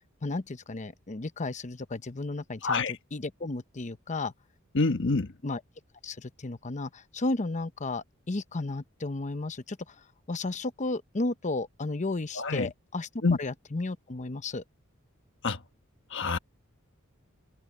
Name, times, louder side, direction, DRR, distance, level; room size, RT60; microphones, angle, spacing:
voice 1, 0.2-2.8 3.1-4.3 5.4-5.6 6.0-9.9 10.3-13.1 13.4-14.6, left 2 dB, 35° left, 0.8 m, -33 dB
voice 2, 2.6-3.0 4.7-5.3 12.3-12.7 13.2-13.4 15.4-15.6 16.1-16.4, left 3 dB, 60° left, 1.3 m, -26 dB
open air
head